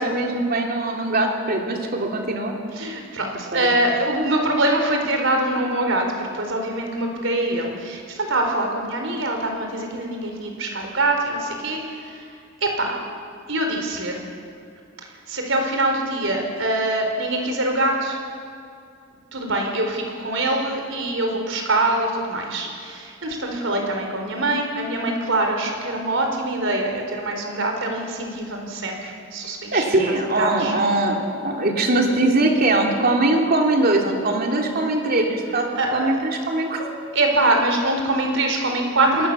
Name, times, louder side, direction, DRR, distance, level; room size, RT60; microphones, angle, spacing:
voice 1, 0.0-2.5 3.5-3.7 29.7-36.9, right 2 dB, 45° right, 1 dB, 3.3 m, -21 dB
voice 2, 2.7-12.3 12.6-13.0 13.5-14.2 15.3-18.2 19.3-29.8 30.4-30.7 35.7-36.1 37.1-39.3, right 2 dB, 70° right, 3 dB, 4.6 m, -24 dB
29.5 x 19.5 x 7.1 m, 2.3 s
head